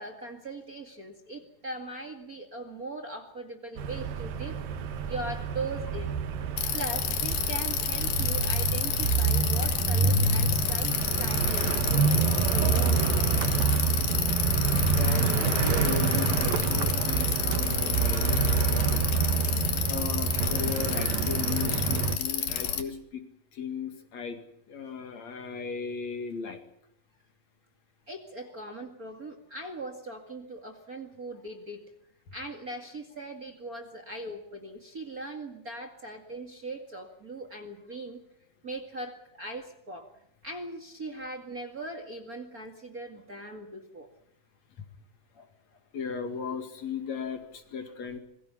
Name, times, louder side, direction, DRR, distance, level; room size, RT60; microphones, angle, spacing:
voice 1, 0.0-4.6 5.1-6.1 6.7-12.1 12.4-13.1 28.1-31.8 32.3-38.2 38.6-40.1 40.4-44.1, right 2 dB, 30° right, 4 dB, 2.1 m, -40 dB
sound 1, 3.8-22.2, right 5 dB, 80° right, 3.3 m, -27 dB
Bicycle, 6.6-22.8, left 10 dB, 90° left, 3.6 m, -30 dB
voice 2, 14.8-19.0 19.9-23.2 23.5-24.4 24.7-26.6 45.4-45.5 45.9-48.2, left 6 dB, 55° left, 7 dB, 3.2 m, -36 dB
26.5 x 22.5 x 5.8 m, 0.77 s
omnidirectional pair, 4.0 m